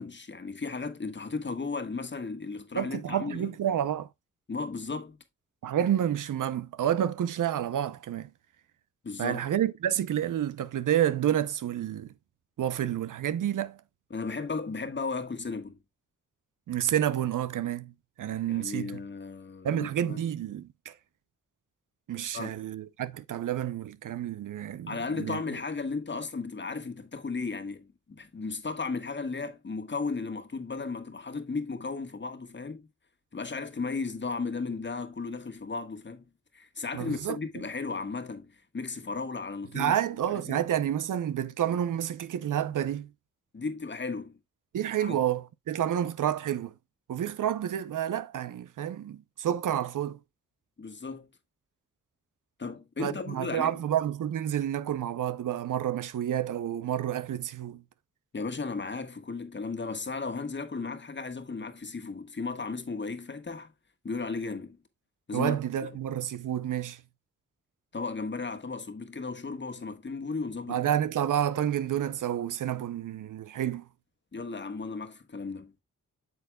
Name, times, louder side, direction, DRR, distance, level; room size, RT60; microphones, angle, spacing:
voice 1, 0.0-3.5 4.5-5.2 9.0-9.5 14.1-15.8 18.5-20.2 22.3-22.5 24.9-32.9 33.3-36.3 36.5-40.0 40.3-40.6 43.5-44.4 45.0-45.2 50.8-51.3 52.6-53.8 58.3-63.7 64.0-64.8 65.3-65.6 65.8-65.9 67.9-70.8 74.3-75.7, left 4 dB, 35° left, 1.4 m, -35 dB
voice 2, 2.8-4.1 5.6-8.3 9.2-12.1 12.6-13.8 16.7-17.9 18.2-18.9 19.6-20.9 22.1-25.4 36.9-37.4 39.7-43.1 44.7-46.7 47.1-50.2 53.0-57.8 65.3-67.0 70.7-73.8, right 10 dB, 85° right, 0.7 m, -29 dB
8.1 x 7.0 x 2.2 m
cardioid pair, 75°, 31 cm